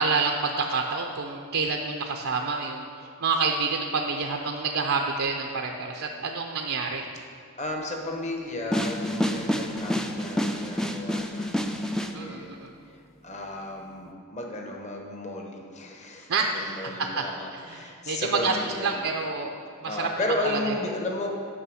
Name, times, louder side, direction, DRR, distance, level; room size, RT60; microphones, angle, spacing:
voice 1, 0.0-2.9 3.2-7.0 12.1-12.7 16.3-17.2 17.5-18.6 18.8-20.1 20.4-20.7, right 4 dB, 70° right, 2 dB, 0.6 m, -28 dB
voice 2, 7.6-12.6 12.8-13.0 13.2-19.0 19.8-21.3, left 1 dB, 30° left, 1 dB, 1.1 m, -34 dB
sound 1, 8.7-12.1, equal, 5° left, 0.4 m, -28 dB
9.7 x 5.8 x 6.3 m, 2.3 s
head